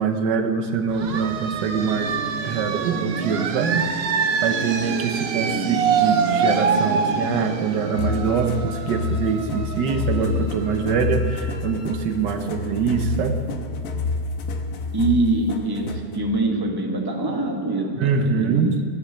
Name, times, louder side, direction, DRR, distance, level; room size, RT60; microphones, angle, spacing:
voice 1, 0.0-2.2 2.4-3.9 4.4-13.4 18.0-18.7, right 6 dB, 80° right, 7 dB, 1.6 m, -24 dB
sound 1, 0.9-10.4, right 5 dB, 55° right, 0.7 m, -25 dB
Wind instrument woodwind instrument, 7.7-12.0, equal, 50° left, 3.1 m, -42 dB
sound 2, 8.0-16.2, left 3 dB, 65° left, 1.4 m, -28 dB
voice 2, 14.9-18.8, right 2 dB, 15° right, 1 dB, 1.3 m, -24 dB
12.0 x 10.5 x 7.8 m, 2.1 s
omnidirectional pair, 1.9 m